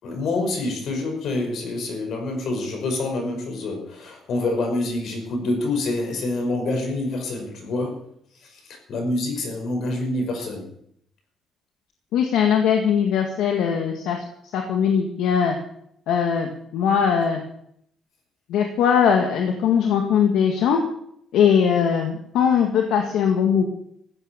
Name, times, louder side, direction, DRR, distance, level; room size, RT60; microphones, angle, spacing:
voice 1, 0.0-8.0 8.4-10.7, left 2 dB, 70° left, 3 dB, 5.7 m, -27 dB
voice 2, 12.1-14.2 14.5-15.6 16.1-17.4 18.5-20.8 21.3-23.6, left 7 dB, 90° left, 3 dB, 1.9 m, -20 dB
15.0 x 8.7 x 7.3 m, 0.70 s
cardioid pair, 90°, 0 cm